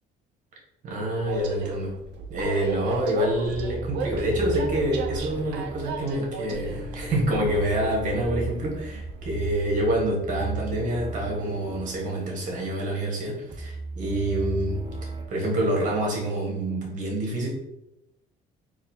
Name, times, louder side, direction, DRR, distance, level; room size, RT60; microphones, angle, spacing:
voice 1, 0.8-1.9 2.3-17.5, right 1 dB, 50° right, -1 dB, 1.3 m, -27 dB
Train, 1.2-9.8, right 4 dB, 85° right, 0.5 m, -36 dB
sound 1, 2.8-15.3, right 3 dB, 25° right, 0.5 m, -36 dB
4.0 x 2.6 x 2.8 m, 0.84 s
cardioid pair, 110°, 17 cm